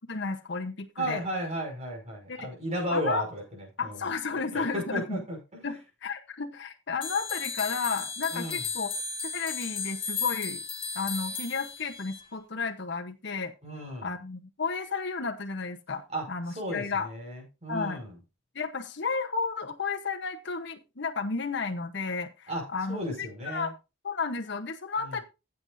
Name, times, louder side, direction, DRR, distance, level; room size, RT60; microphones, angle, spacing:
voice 1, 0.1-1.2 2.3-2.5 2.9-3.2 3.8-5.2 5.6-8.9 9.3-10.6 10.9-13.5 14.0-17.1 17.7-18.0 18.5-23.7 24.0-25.2, left 4 dB, 60° left, 4 dB, 1.0 m, -33 dB
voice 2, 1.0-4.1 4.3-5.4 8.3-8.6 13.6-14.1 16.1-18.2 22.5-23.7 25.0-25.2, equal, 35° right, 1 dB, 5.8 m, -34 dB
sound 1, 7.0-12.2, left 5 dB, 25° left, 1.9 m, -35 dB
15.0 x 7.9 x 2.6 m, 0.28 s
head